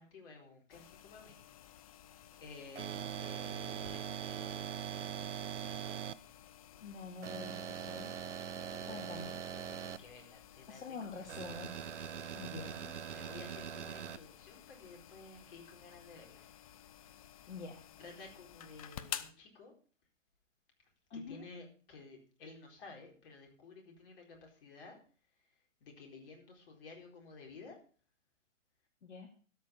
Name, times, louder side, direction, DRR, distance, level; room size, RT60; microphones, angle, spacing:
voice 1, 0.0-1.4 2.3-4.7 8.7-11.3 13.1-16.5 18.0-19.7 21.1-25.0 25.8-27.8, left 3 dB, 45° left, 2 dB, 4.3 m, -54 dB
sound 1, 0.7-19.3, left 11 dB, 30° left, 0.6 m, -53 dB
sound 2, 2.8-6.1 7.2-10.0 11.3-14.2, right 8 dB, 65° right, 0.8 m, -42 dB
voice 2, 6.8-8.2 8.9-9.4 10.7-11.8 12.3-12.9 17.5-17.8 21.1-21.4 29.0-29.3, left 4 dB, 60° left, 1 dB, 2.5 m, -46 dB
12.5 x 6.4 x 7.2 m, 0.42 s
figure-of-eight pair, 130°, 39 cm